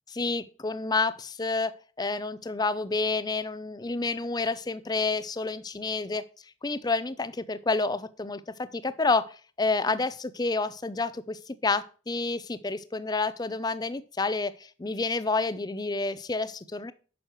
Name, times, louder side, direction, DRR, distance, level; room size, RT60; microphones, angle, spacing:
voice 1, 0.2-1.7 2.0-6.2 6.6-16.9, left 3 dB, 20° left, 15 dB, 0.5 m, -29 dB
8.9 x 6.3 x 3.0 m, 0.38 s
head